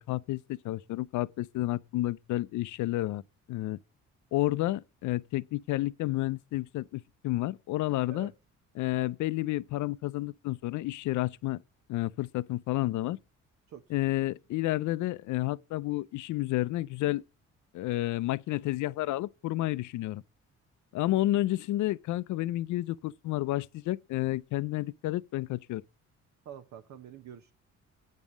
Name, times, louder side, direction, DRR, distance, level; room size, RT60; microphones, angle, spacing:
voice 1, 0.0-3.2 3.5-3.8 4.3-8.3 8.8-11.6 11.9-13.2 13.9-17.2 17.7-20.2 20.9-25.8, left 16 dB, 75° left, 0.5 m, -30 dB
voice 2, 26.4-27.5, right 8 dB, 65° right, 0.8 m, -46 dB
8.3 x 5.3 x 7.2 m
cardioid pair, 90°, 30 cm